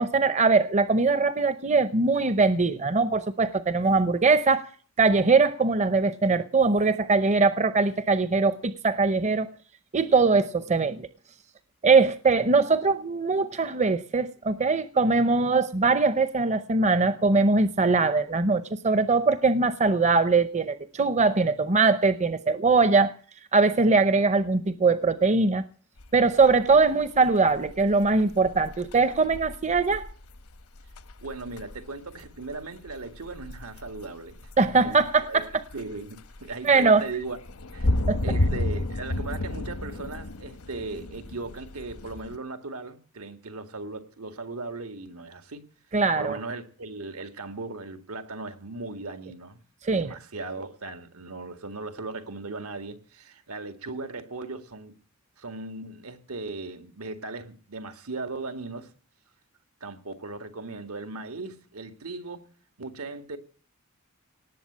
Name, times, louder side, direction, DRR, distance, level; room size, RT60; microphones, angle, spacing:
voice 1, 0.0-4.7 5.0-9.5 9.9-11.1 11.8-23.1 23.5-25.6 26.1-30.1 34.6-35.4 36.6-37.0 38.1-38.2 45.9-46.4 49.8-50.1, right 4 dB, 30° right, 0.7 m, -22 dB
sound 1, 26.0-42.4, left 1 dB, 90° left, 1.0 m, -33 dB
voice 2, 31.2-34.5 34.7-35.0 35.3-35.4 35.7-37.4 37.7-38.0 38.2-45.6 46.2-49.6 49.9-54.9 55.4-58.9 59.8-62.5 62.8-63.4, right 3 dB, 80° right, 2.1 m, -37 dB
18.5 x 7.8 x 8.6 m
head